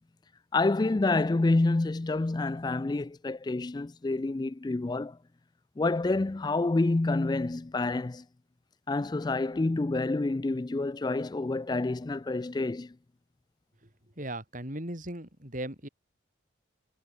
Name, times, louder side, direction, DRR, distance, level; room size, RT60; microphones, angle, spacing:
voice 1, 0.5-5.2 5.8-8.2 8.9-13.0, left 2 dB, 20° left, 0.3 m, -28 dB
voice 2, 14.2-15.9, right 1 dB, 40° right, 5.4 m, -37 dB
head